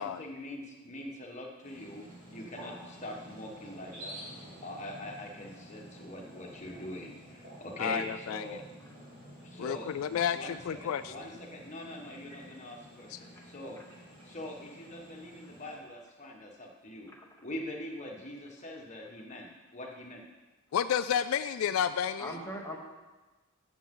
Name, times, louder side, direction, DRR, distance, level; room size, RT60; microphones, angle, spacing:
voice 1, 0.0-2.0 2.3-4.2 4.6-8.6 9.4-13.8 14.2-17.1 17.4-20.2, left 1 dB, 35° left, 0 dB, 1.5 m, -43 dB
sound 1, 1.6-15.8, equal, 40° right, 3.7 m, -50 dB
voice 2, 7.8-8.6 9.6-11.1 13.1-13.2 20.7-22.3, left 8 dB, 80° left, 12 dB, 0.3 m, -31 dB
voice 3, 22.2-22.8, equal, 15° left, -1 dB, 1.3 m, -41 dB
13.0 x 7.1 x 3.8 m, 1.2 s
head